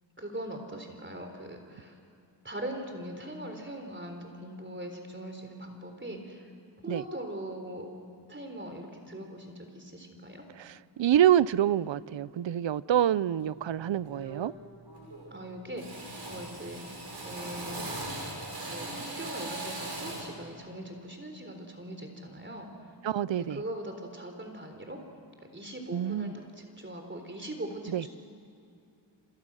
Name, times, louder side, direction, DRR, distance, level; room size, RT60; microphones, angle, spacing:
voice 1, 0.2-1.9 2.4-6.4 6.8-7.9 8.3-10.4 15.3-16.9 17.2-17.9 18.6-22.7 23.3-25.0 25.5-28.1, right 1 dB, 25° right, 4 dB, 3.9 m, -41 dB
voice 2, 10.6-14.5 23.0-23.6 25.9-26.3 27.9-28.0, right 11 dB, 80° right, 19 dB, 0.6 m, -26 dB
Drill, 13.5-13.7 14.1-14.6 14.9-15.4 15.8-20.4, right 2 dB, 60° right, 6.6 m, -39 dB
28.0 x 27.5 x 6.3 m, 2.5 s
wide cardioid pair, 90°, 45 cm